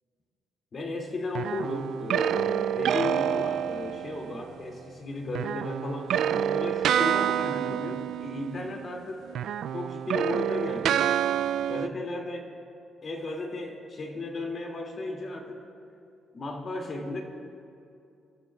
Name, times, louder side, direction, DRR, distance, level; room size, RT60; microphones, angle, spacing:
voice 1, 0.7-9.2 9.7-11.1 11.7-12.5 13.0-15.6 16.3-17.2, left 2 dB, 45° left, 1 dB, 2.4 m, -35 dB
sound 1, 1.3-4.4 5.3-9.0 9.3-11.9, right 9 dB, 75° right, 0.3 m, -28 dB
29.0 x 13.0 x 2.4 m, 2.5 s
cardioid pair, 90°, 0 cm